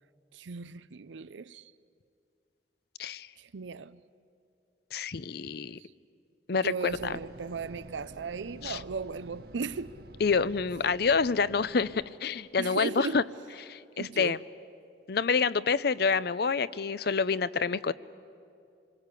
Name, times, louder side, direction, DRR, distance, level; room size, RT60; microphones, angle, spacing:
voice 1, 0.3-1.6 3.4-4.0 5.8-5.9 6.6-9.9 12.6-13.2 14.0-14.4, right 5 dB, 85° right, 0.6 m, -36 dB
voice 2, 4.9-5.8 6.5-6.7 7.0-7.1 8.6-8.8 10.2-13.2 13.6-14.4 15.1-17.9, left 5 dB, 60° left, 0.6 m, -27 dB
sound 1, 6.9-12.1, right 1 dB, 55° right, 1.1 m, -49 dB
27.5 x 22.0 x 8.3 m
head